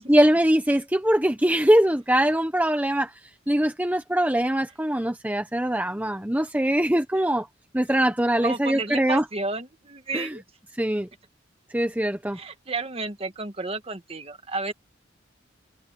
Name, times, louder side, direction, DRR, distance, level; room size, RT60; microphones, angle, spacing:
voice 1, 0.1-3.1 3.5-7.5 7.7-9.2 10.1-10.3 10.8-11.1 11.7-12.4, right 1 dB, 10° right, 1.0 m, -22 dB
voice 2, 8.4-10.4 12.3-14.7, right 3 dB, 30° right, 1.7 m, -32 dB
head